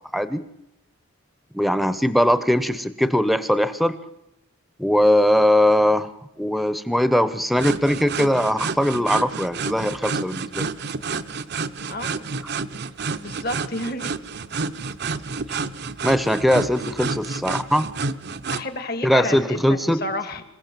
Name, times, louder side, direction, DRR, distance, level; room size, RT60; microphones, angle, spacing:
voice 1, 1.5-4.0 4.8-6.1 6.4-10.7 16.0-17.9 19.0-20.0, equal, ahead, 13 dB, 0.9 m, -20 dB
sound 1, 7.6-18.7, right 4 dB, 50° right, 0.8 m, -29 dB
voice 2, 11.9-12.3 13.1-14.1 18.5-20.4, left 1 dB, 45° left, 10 dB, 1.9 m, -30 dB
26.5 x 16.5 x 7.6 m, 0.84 s
head